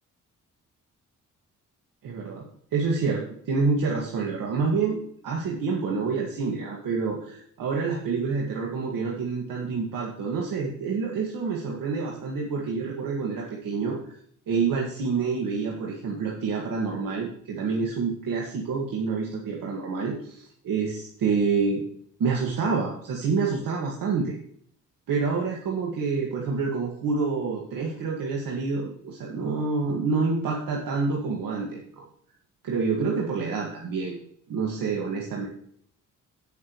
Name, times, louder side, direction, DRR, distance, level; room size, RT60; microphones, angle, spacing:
voice 1, 2.0-2.5 2.7-5.0 5.2-14.1 14.5-21.8 22.2-24.4 25.1-32.0 32.6-34.2 34.5-35.5, right 4 dB, 90° right, -2 dB, 2.0 m, -27 dB
17.0 x 6.1 x 3.1 m, 0.63 s
cardioid pair, 85°, 32 cm